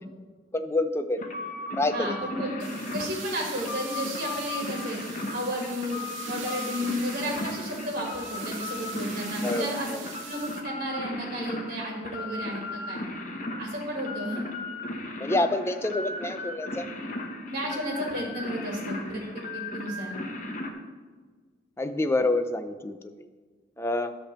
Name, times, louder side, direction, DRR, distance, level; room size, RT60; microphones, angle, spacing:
voice 1, 0.5-1.3 1.7-2.1 9.4-10.0 15.2-16.9 21.8-23.1 23.8-24.2, left 2 dB, 15° left, 9 dB, 0.3 m, -27 dB
sound 1, 1.2-20.7, left 2 dB, 40° left, 0.8 m, -36 dB
voice 2, 1.9-6.0 6.3-9.9 10.2-13.0 13.6-14.4 17.5-20.1, equal, 45° right, -1 dB, 1.7 m, -33 dB
sound 2, 2.6-10.6, right 6 dB, 70° right, 0.9 m, -42 dB
10.0 x 3.3 x 6.6 m, 1.4 s
head